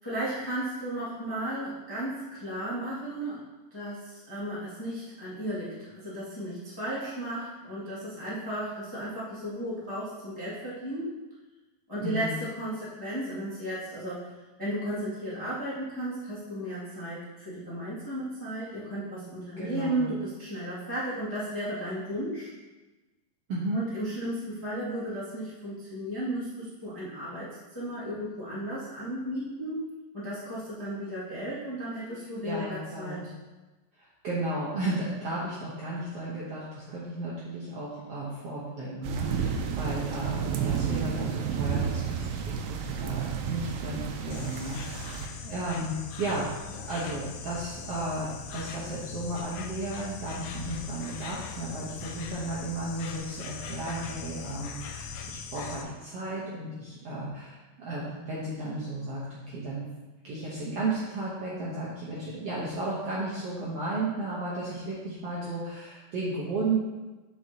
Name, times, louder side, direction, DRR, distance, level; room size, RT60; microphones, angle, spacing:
voice 1, 0.0-3.4 3.7-11.2 11.9-14.3 14.6-22.5 23.7-33.2, right 1 dB, 10° left, -10 dB, 1.0 m, -34 dB
voice 2, 12.0-12.3 19.6-20.1 23.5-23.8 32.4-33.2 34.0-59.8 60.2-66.8, right 2 dB, 65° right, -7 dB, 1.6 m, -34 dB
sound 1, 39.0-45.3, right 7 dB, 90° right, 2.4 m, -31 dB
Insect, 44.3-55.8, left 6 dB, 85° left, 1.7 m, -40 dB
7.9 x 6.2 x 2.9 m, 1.2 s
omnidirectional pair, 4.0 m